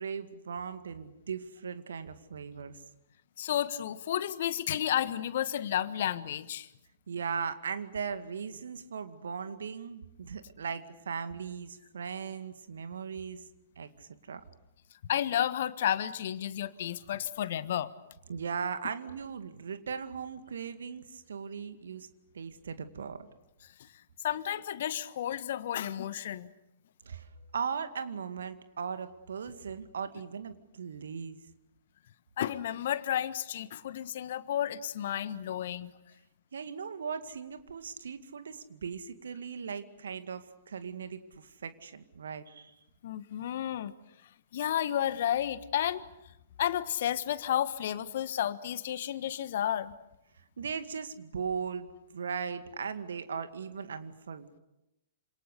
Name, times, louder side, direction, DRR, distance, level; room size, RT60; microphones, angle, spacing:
voice 1, 0.0-2.8 7.1-13.4 13.8-14.4 18.3-22.1 22.3-23.2 27.1-31.4 36.5-42.7 50.6-54.6, right 6 dB, 65° right, 10 dB, 2.1 m, -38 dB
voice 2, 3.4-6.7 15.0-17.9 23.8-23.9 24.2-26.5 32.4-35.9 43.0-43.9 44.5-46.0 46.6-49.9, left 11 dB, 55° left, 14 dB, 1.4 m, -32 dB
28.0 x 27.0 x 6.7 m, 0.89 s
figure-of-eight pair, 110°, 0 cm